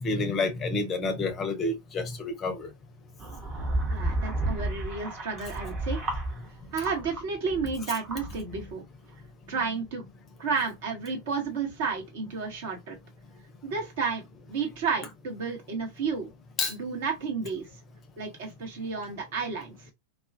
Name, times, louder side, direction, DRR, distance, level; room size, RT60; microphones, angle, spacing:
voice 1, 0.0-2.7 16.6-16.7, left 3 dB, 25° left, 0.5 m, -29 dB
sound 1, 3.2-7.2 7.5-8.7, right 1 dB, 30° right, 0.8 m, -32 dB
voice 2, 3.9-6.2 6.7-8.8 9.5-10.0 10.4-13.0 13.6-16.3 16.7-17.7 18.2-19.8, right 5 dB, 55° right, 1.0 m, -32 dB
2.3 x 2.1 x 2.5 m
figure-of-eight pair, 90°, 0 cm